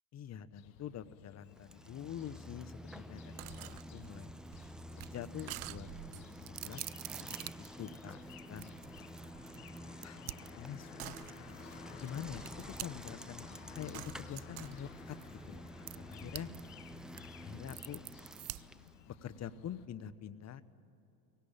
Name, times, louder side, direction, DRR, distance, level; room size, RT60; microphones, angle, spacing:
voice 1, 0.1-4.3 4.9-6.8 7.2-7.5 7.8-8.7 10.0-11.2 11.5-15.6 15.9-16.5 17.4-18.0 19.1-20.6, left 9 dB, 35° left, 12 dB, 1.1 m, -46 dB
sound 1, 0.5-19.9, left 11 dB, 60° left, 1.4 m, -56 dB
Bicycle, 1.5-19.0, equal, ahead, 0.4 m, -50 dB
sound 2, 3.4-13.3 13.9-16.6 16.9-18.9, right 18 dB, 65° right, 0.6 m, -47 dB
23.0 x 18.5 x 8.8 m, 3.0 s
hypercardioid pair, 75°, 48 cm